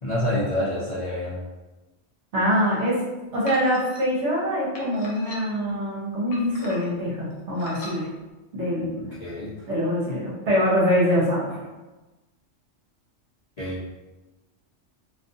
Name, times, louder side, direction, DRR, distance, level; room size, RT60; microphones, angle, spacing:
voice 1, 0.0-1.4 5.7-5.8 9.2-9.5 13.6-13.8, left 1 dB, 50° left, -9 dB, 0.5 m, -27 dB
voice 2, 2.3-3.0 3.3-8.1 8.5-9.0 9.7-11.6, equal, 65° right, -5 dB, 1.1 m, -24 dB
sound 1, 3.5-4.0 4.7-5.7 6.3-7.0 7.6-8.0, left 2 dB, 80° left, 0.9 m, -40 dB
2.5 x 2.4 x 2.6 m, 1.1 s
omnidirectional pair, 1.3 m